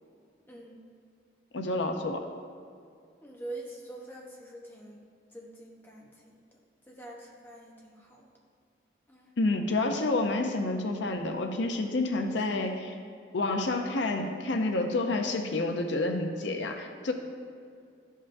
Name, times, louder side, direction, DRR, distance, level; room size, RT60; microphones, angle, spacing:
voice 1, 0.5-0.8 3.2-6.4 6.9-8.3 9.1-9.3 12.3-12.8, right 2 dB, 10° left, -2 dB, 0.9 m, -45 dB
voice 2, 1.5-2.2 9.4-12.9 13.3-17.1, left 2 dB, 80° left, 5 dB, 0.6 m, -29 dB
12.0 x 5.4 x 2.6 m, 2.3 s
head